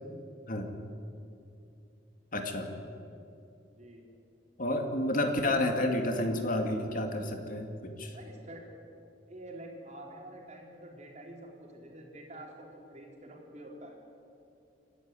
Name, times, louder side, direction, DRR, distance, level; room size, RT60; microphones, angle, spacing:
voice 1, 2.3-2.7 4.6-8.1, left 1 dB, 50° left, 4 dB, 2.3 m, -30 dB
voice 2, 3.7-4.0 8.0-8.7 9.3-14.0, right 1 dB, 40° right, -1 dB, 4.5 m, -47 dB
27.5 x 12.0 x 9.8 m, 2.6 s
head